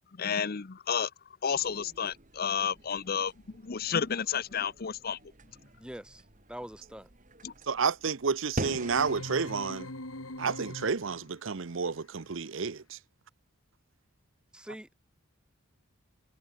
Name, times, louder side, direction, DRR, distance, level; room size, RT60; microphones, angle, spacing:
voice 1, 0.1-1.1 1.4-3.3 3.6-5.2 7.4-7.5, left 7 dB, 45° left, 0.6 m, -31 dB
sound 1, 1.5-11.2, right 1 dB, 35° right, 3.2 m, -45 dB
voice 2, 5.8-6.2 6.5-7.1 14.5-14.9, equal, 5° right, 3.9 m, -43 dB
voice 3, 7.7-9.9 10.4-13.0, right 5 dB, 65° right, 0.7 m, -30 dB
sound 2, 8.7-11.3, left 1 dB, 90° left, 6.8 m, -42 dB
head